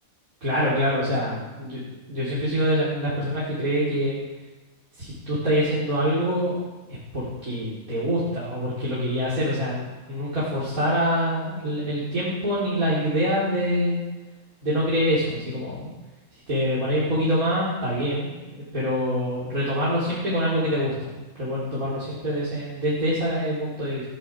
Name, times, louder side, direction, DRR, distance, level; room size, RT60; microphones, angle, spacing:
voice 1, 0.4-1.8 2.1-4.2 5.0-6.5 6.9-14.0 14.6-15.9 16.5-21.1 21.3-24.0, equal, 90° right, -9 dB, 4.9 m, -25 dB
18.5 x 15.5 x 4.9 m, 1.2 s
omnidirectional pair, 1.5 m